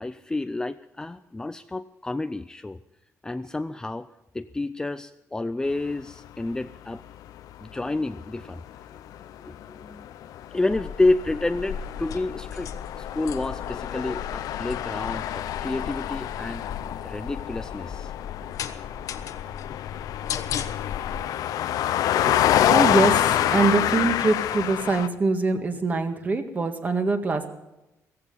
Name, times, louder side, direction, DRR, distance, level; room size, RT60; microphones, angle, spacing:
voice 1, 0.0-2.8 3.2-4.1 4.3-7.0 7.6-8.6 9.4-10.1 10.5-12.7 13.0-16.6 17.0-18.1, left 2 dB, 10° left, 10 dB, 0.4 m, -29 dB
sound 1, 6.2-6.6 7.3-7.4 7.7-25.1, left 12 dB, 90° left, 0.7 m, -27 dB
sound 2, 10.7-21.2, left 7 dB, 65° left, 1.2 m, -37 dB
voice 2, 22.0-22.4 22.6-27.5, right 3 dB, 30° right, 6 dB, 1.8 m, -24 dB
16.5 x 15.5 x 5.5 m, 0.95 s
cardioid pair, 145°, 6 cm